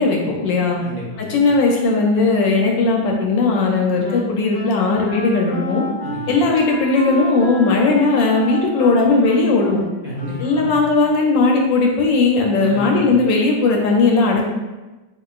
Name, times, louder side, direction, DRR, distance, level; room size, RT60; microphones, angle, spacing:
voice 1, 0.0-0.8 1.3-5.8 6.3-9.8 10.4-14.4, left 3 dB, 75° left, 0 dB, 1.2 m, -17 dB
voice 2, 0.8-1.4 6.0-6.4 10.0-10.7 12.6-13.2, equal, 55° right, -6 dB, 1.1 m, -31 dB
Wind instrument woodwind instrument, 3.6-11.0, left 1 dB, 55° left, 1.1 m, -31 dB
4.2 x 3.7 x 2.4 m, 1.1 s
omnidirectional pair, 2.2 m